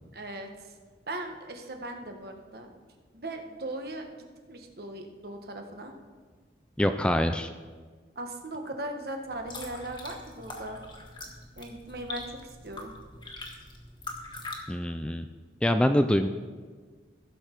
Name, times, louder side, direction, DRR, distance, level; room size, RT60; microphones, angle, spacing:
voice 1, 0.1-0.8 1.1-2.7 3.1-4.2 4.5-5.9 8.1-10.8 11.5-12.9, right 1 dB, 55° right, 4 dB, 1.3 m, -38 dB
voice 2, 6.8-7.5 14.7-15.3 15.6-16.3, left 1 dB, 5° left, 8 dB, 0.3 m, -24 dB
sound 1, 9.2-14.6, left 2 dB, 25° left, 1.6 m, -43 dB
16.0 x 6.9 x 4.5 m, 1.5 s
head